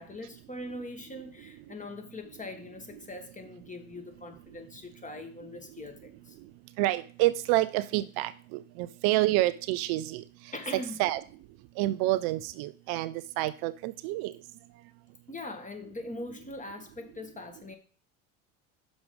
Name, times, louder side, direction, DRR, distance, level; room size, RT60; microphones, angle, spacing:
voice 1, 0.0-6.4 10.5-11.0 15.3-17.8, left 2 dB, 20° left, 5 dB, 1.6 m, -41 dB
voice 2, 6.8-10.2 11.0-11.2 11.8-14.3, right 17 dB, 60° right, 14 dB, 0.5 m, -28 dB
6.2 x 5.2 x 5.1 m, 0.41 s
hypercardioid pair, 65°, 42 cm